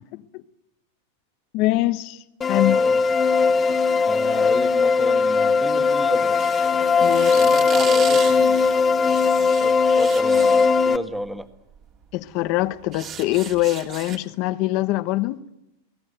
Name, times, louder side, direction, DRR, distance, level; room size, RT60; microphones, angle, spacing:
voice 1, 1.5-2.2 2.5-2.8 7.0-7.5 12.1-15.4, left 17 dB, 45° left, 1.1 m, -23 dB
sound 1, 2.4-11.0, left 5 dB, 20° left, 1.2 m, -19 dB
voice 2, 2.7-3.0 4.0-6.4 7.3-8.6 9.6-11.5, equal, 5° right, 1.7 m, -32 dB
sound 2, 6.4-10.8 11.8-12.0 12.3-14.2, right 8 dB, 30° right, 2.9 m, -35 dB
28.0 x 18.0 x 9.0 m
supercardioid pair, 140°, 0 cm